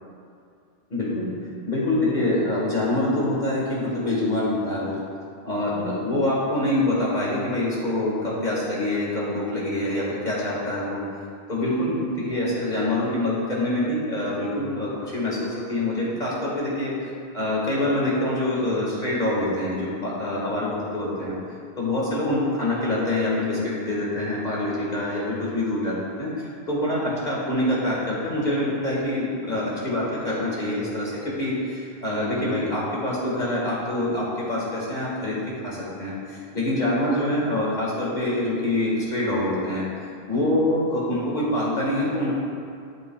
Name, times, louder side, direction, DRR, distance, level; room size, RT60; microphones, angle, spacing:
voice 1, 0.9-1.3 1.7-5.0 5.4-11.0 11.5-21.4 21.8-35.4 35.6-36.2 36.5-39.9 40.3-42.4, left 1 dB, 45° left, -6 dB, 1.8 m, -25 dB
12.0 x 9.0 x 2.3 m, 2.4 s
omnidirectional pair, 1.1 m